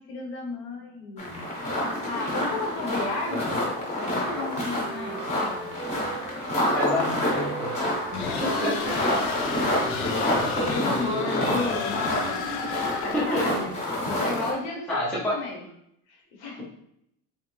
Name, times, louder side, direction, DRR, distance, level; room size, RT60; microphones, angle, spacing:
voice 1, 0.1-1.4 2.0-3.6 3.9-5.7 8.7-9.1 10.7-12.5 13.0-13.7 14.1-15.6 16.1-16.6, left 3 dB, 55° left, 0 dB, 0.9 m, -33 dB
sound 1, 1.2-14.5, left 1 dB, 20° left, 0.8 m, -28 dB
Wind instrument woodwind instrument, 3.0-6.5 6.8-10.8, right 6 dB, 70° right, 0.6 m, -43 dB
voice 2, 6.7-7.7 8.2-8.9 10.1-10.9 13.1-13.6 14.9-15.4, left 1 dB, 5° left, -6 dB, 0.4 m, -29 dB
sound 2, 8.1-13.5, left 4 dB, 90° left, 0.7 m, -31 dB
3.5 x 3.0 x 3.1 m, 0.76 s
cardioid pair, 180°, 32 cm